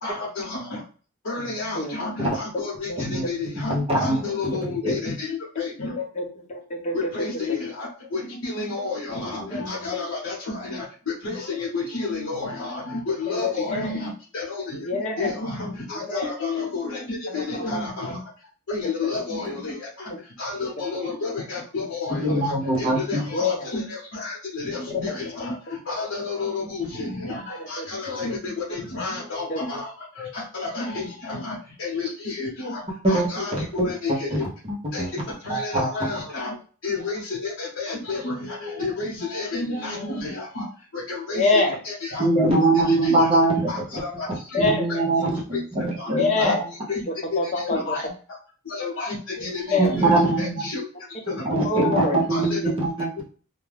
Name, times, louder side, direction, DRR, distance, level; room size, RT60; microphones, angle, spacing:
voice 1, 0.0-0.8 1.2-6.0 6.9-34.4 34.9-36.6 36.8-43.3 43.7-44.6 44.9-45.0 45.3-45.6 46.0-46.1 46.4-46.5 46.9-47.0 47.3-48.4 48.6-50.9 51.2-51.4 52.3-52.8 53.2-53.3, left 3 dB, 65° left, -7 dB, 0.8 m, -31 dB
voice 2, 3.6-4.2 4.8-4.9 22.2-23.0 33.0-33.3 33.8-34.5 35.0-35.1 35.5-35.9 42.2-43.7 44.6-46.5 49.8-50.6 51.3-53.1, right 2 dB, 25° right, -4 dB, 0.7 m, -22 dB
voice 3, 6.2-6.9 9.4-9.6 13.3-14.0 14.8-15.3 16.0-16.3 17.3-18.1 19.0-19.1 22.3-22.4 23.3-23.7 27.8-27.9 29.5-29.6 39.9-40.2 41.3-41.8 44.5-44.9 46.1-46.6 47.4-47.8 49.7-49.9 51.6-52.2, left 3 dB, 30° left, 1 dB, 0.6 m, -25 dB
2.4 x 2.1 x 3.2 m, 0.39 s
head